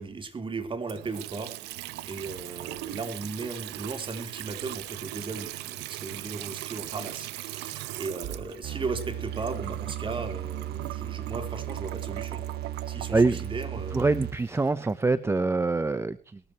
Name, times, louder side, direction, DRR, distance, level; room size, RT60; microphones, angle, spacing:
voice 1, 0.0-12.4 12.9-14.2, right 4 dB, 30° right, 3.7 m, -36 dB
Water tap faucet / Sink (filling or washing) / Trickle dribble, 0.8-14.9, right 16 dB, 85° right, 0.9 m, -40 dB
sound 1, 8.6-14.5, right 12 dB, 70° right, 2.2 m, -36 dB
voice 2, 13.1-13.5 13.9-16.4, right 3 dB, 15° right, 0.7 m, -25 dB
22.0 x 13.0 x 3.0 m
cardioid pair, 110°, 17 cm